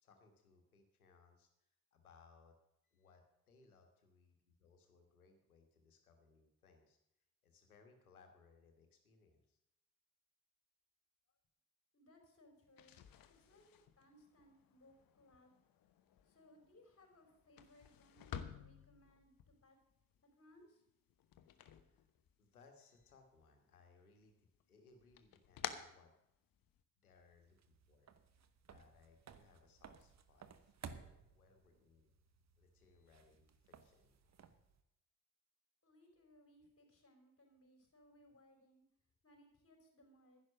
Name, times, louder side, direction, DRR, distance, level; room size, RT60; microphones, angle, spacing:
voice 1, 0.0-2.5 2.8-3.2 3.5-7.0 7.4-9.6 21.7-22.1 22.4-26.1 27.0-28.1 28.7-32.1 32.6-34.2, left 4 dB, 85° left, 5 dB, 1.6 m, -67 dB
voice 2, 11.9-13.0 13.3-15.6 16.2-19.8 20.2-20.8 35.8-38.9 39.2-40.4, left 1 dB, 30° left, 2 dB, 4.8 m, -66 dB
sound 1, 12.6-22.7 23.0-23.8 24.2-26.8, left 9 dB, 50° left, 1.1 m, -53 dB
sound 2, 27.1-34.8, right 6 dB, 40° right, 1.1 m, -58 dB
11.0 x 11.0 x 6.3 m, 0.83 s
figure-of-eight pair, 40°, 42 cm